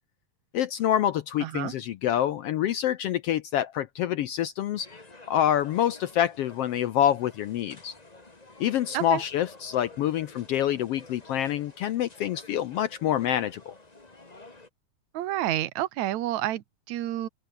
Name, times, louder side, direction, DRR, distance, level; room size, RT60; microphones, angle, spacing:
voice 1, 0.5-5.0 5.3-7.9 8.6-13.7, left 11 dB, 70° left, 1.5 m, -26 dB
voice 2, 1.4-1.7 8.9-9.2 15.1-17.3, right 14 dB, 75° right, 2.5 m, -29 dB
sound 1, 4.8-14.7, left 2 dB, 15° left, 1.9 m, -51 dB
open air
omnidirectional pair, 3.4 m